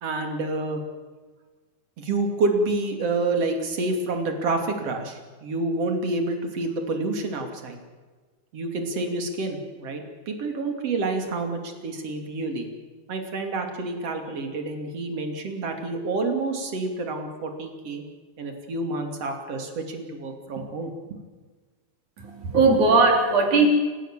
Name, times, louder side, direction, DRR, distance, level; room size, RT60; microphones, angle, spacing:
voice 1, 0.0-0.8 2.0-7.8 8.5-12.7 13.1-18.0 18.4-20.9, right 2 dB, 50° right, 4 dB, 3.8 m, -28 dB
voice 2, 22.2-23.7, right 3 dB, 70° right, 2 dB, 5.0 m, -19 dB
29.0 x 15.5 x 7.6 m, 1.4 s
omnidirectional pair, 3.5 m